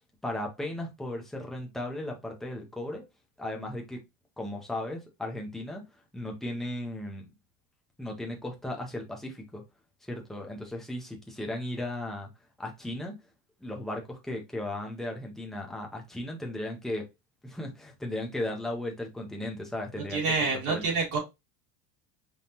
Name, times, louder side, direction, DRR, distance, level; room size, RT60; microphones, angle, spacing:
voice 1, 0.2-3.0 3.4-4.0 4.4-5.8 6.1-7.3 8.0-9.6 10.1-12.3 12.6-13.2 13.6-17.1 17.4-20.2 20.7-20.8, left 1 dB, ahead, 0.3 m, -36 dB
voice 2, 20.1-21.2, right 4 dB, 55° right, 1.9 m, -27 dB
5.2 x 2.7 x 2.7 m
cardioid pair, 170°, 39 cm